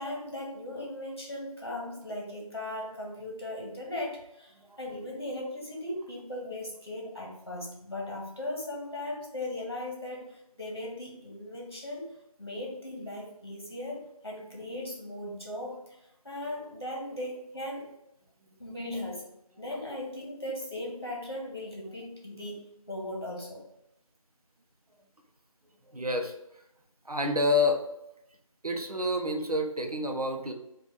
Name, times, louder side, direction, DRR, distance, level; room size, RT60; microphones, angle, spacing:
voice 1, 0.0-12.1 12.4-17.9 18.6-19.3 19.6-23.6, left 1 dB, 45° left, -2 dB, 1.2 m, -38 dB
voice 2, 25.9-26.3 27.1-27.8 28.6-30.5, left 2 dB, 85° right, 4 dB, 0.7 m, -28 dB
3.2 x 2.5 x 3.9 m, 0.82 s
figure-of-eight pair, 175°, 19 cm